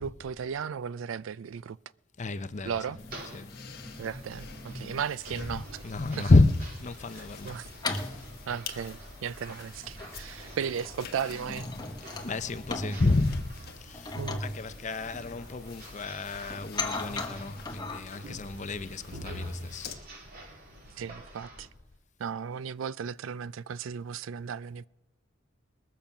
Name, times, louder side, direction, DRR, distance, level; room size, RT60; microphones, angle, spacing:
voice 1, 0.0-1.8 2.6-3.0 4.0-5.8 6.2-6.3 7.2-7.7 8.5-11.7 14.2-14.4 21.0-21.7 22.2-24.9, right 7 dB, 80° right, 0.4 m, -35 dB
voice 2, 2.2-2.8 3.3-3.6 5.5-7.6 8.0-8.2 12.2-19.9, left 2 dB, 40° left, 0.6 m, -29 dB
sound 1, 2.5-21.7, right 1 dB, 50° right, 2.7 m, -47 dB
sound 2, 2.9-5.0 5.5-18.0, left 2 dB, 20° left, 1.2 m, -40 dB
sound 3, 3.0-19.9, left 8 dB, 55° left, 1.1 m, -49 dB
21.0 x 7.0 x 5.8 m
head